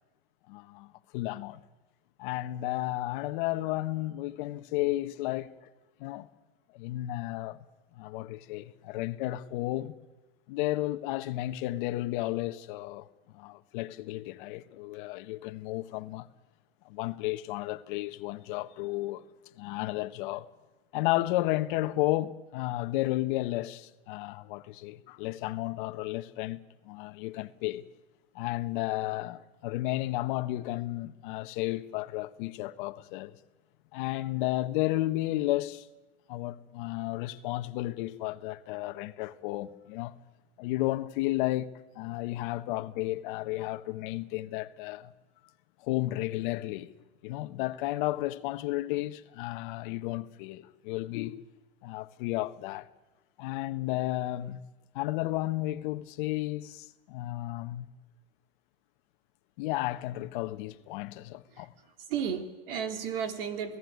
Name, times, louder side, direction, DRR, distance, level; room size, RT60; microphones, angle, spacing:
voice 1, 0.5-1.6 2.2-5.5 6.0-6.3 6.7-7.6 7.9-9.9 10.5-13.1 13.3-16.3 16.8-19.2 19.6-20.5 20.9-27.8 28.3-33.4 33.9-35.9 36.3-40.1 40.6-45.1 45.8-46.9 47.2-51.4 51.8-52.9 53.4-54.6 54.9-57.9 59.6-61.7, left 17 dB, 55° left, 1.4 m, -33 dB
voice 2, 62.0-63.8, right 7 dB, 70° right, 3.5 m, -33 dB
28.5 x 17.5 x 9.5 m
supercardioid pair, 130°, 30 cm